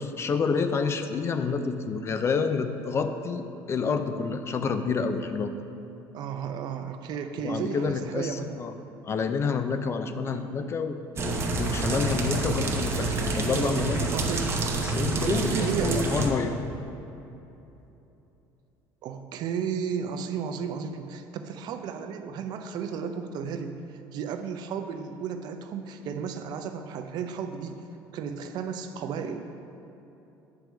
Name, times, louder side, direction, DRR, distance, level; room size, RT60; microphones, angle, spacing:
voice 1, 0.0-5.6 7.4-8.7 9.1-14.1 14.8-16.6, left 5 dB, 35° left, 9 dB, 0.5 m, -28 dB
voice 2, 6.1-8.6 10.3-10.5 14.1-14.6 15.1-16.1 19.0-27.8 28.1-29.5, right 6 dB, 60° right, 7 dB, 0.6 m, -33 dB
sound 1, 11.2-16.3, right 3 dB, 30° right, 0.9 m, -28 dB
8.6 x 4.7 x 6.3 m, 3.0 s
cardioid pair, 115°, 8 cm